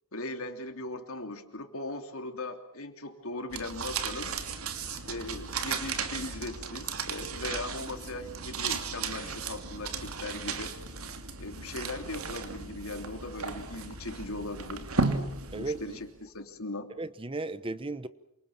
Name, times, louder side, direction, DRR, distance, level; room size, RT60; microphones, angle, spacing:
voice 1, 0.1-4.3 5.1-10.7 11.4-14.9 15.6-16.9, left 2 dB, 80° left, 6 dB, 3.1 m, -39 dB
sound 1, 3.5-16.1, right 4 dB, 90° right, 2.9 m, -35 dB
voice 2, 15.5-16.0 17.0-18.1, right 2 dB, 25° right, 14 dB, 1.0 m, -35 dB
27.5 x 25.5 x 7.3 m, 0.77 s
head